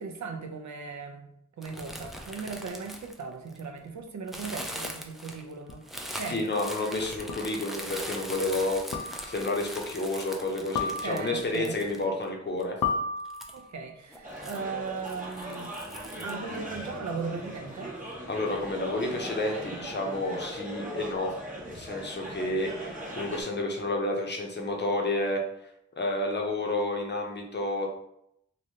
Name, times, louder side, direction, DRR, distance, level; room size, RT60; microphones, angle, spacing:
voice 1, 0.0-1.3 1.6-5.9 6.1-6.4 10.8-12.0 13.5-15.7 16.2-17.9, right 4 dB, 65° right, 5 dB, 0.5 m, -38 dB
sound 1, 1.6-3.8 4.3-12.2 12.6-12.7 13.3-13.6 14.1-14.6 15.1-16.3, equal, ahead, 0.3 m, -41 dB
sound 2, 5.7-5.8 7.3-7.7 8.9-9.5 10.8-11.5 12.8-13.8, left 4 dB, 85° left, 0.5 m, -33 dB
voice 2, 6.3-12.8 18.3-21.3 21.6-25.4 26.0-27.9, left 2 dB, 35° left, 1 dB, 0.6 m, -30 dB
sound 3, 14.2-23.4, right 1 dB, 25° right, 0.8 m, -39 dB
3.1 x 2.6 x 2.7 m, 0.76 s
wide cardioid pair, 110°, 31 cm